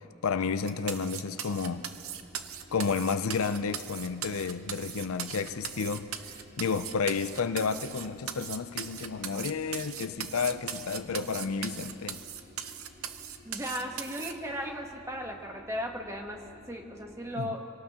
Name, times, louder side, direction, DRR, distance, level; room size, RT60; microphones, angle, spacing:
voice 1, 0.2-1.9 2.7-6.1 6.6-12.2 17.4-17.6, left 5 dB, 80° left, 0.6 m, -31 dB
sound 1, 0.7-14.3, right 9 dB, 80° right, 0.7 m, -39 dB
sound 2, 1.4-17.2, equal, 60° right, 2.6 m, -55 dB
voice 2, 13.4-17.7, equal, 15° right, 1.2 m, -36 dB
26.0 x 18.0 x 3.0 m
head